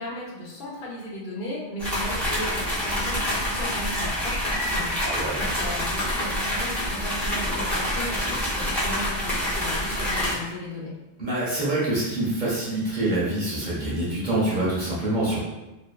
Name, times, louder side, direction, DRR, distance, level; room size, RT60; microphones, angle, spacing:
voice 1, 0.0-10.9, left 1 dB, 60° left, -5 dB, 0.8 m, -36 dB
sound 1, 1.8-10.3, equal, ahead, 0.5 m, -27 dB
voice 2, 5.0-5.5 11.2-15.4, right 1 dB, 50° right, -8 dB, 0.8 m, -26 dB
2.6 x 2.1 x 2.2 m, 1.0 s
omnidirectional pair, 1.1 m